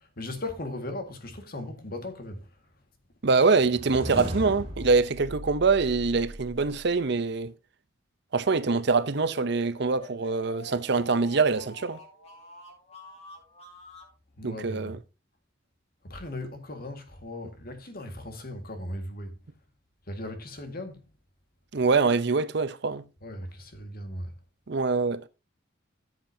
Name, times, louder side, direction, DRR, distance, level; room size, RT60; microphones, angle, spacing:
voice 1, 0.0-2.5 14.4-15.0 16.0-19.4 20.1-21.1 23.2-24.3, left 1 dB, 50° left, 1.9 m, -38 dB
voice 2, 3.2-7.5 8.3-12.0 14.4-15.0 21.7-23.0 24.7-25.2, right 4 dB, 55° right, 0.6 m, -24 dB
sound 1, 3.5-6.8, equal, 30° right, 2.9 m, -37 dB
sound 2, 9.1-14.1, left 1 dB, 35° left, 3.3 m, -48 dB
14.5 x 7.7 x 2.8 m
head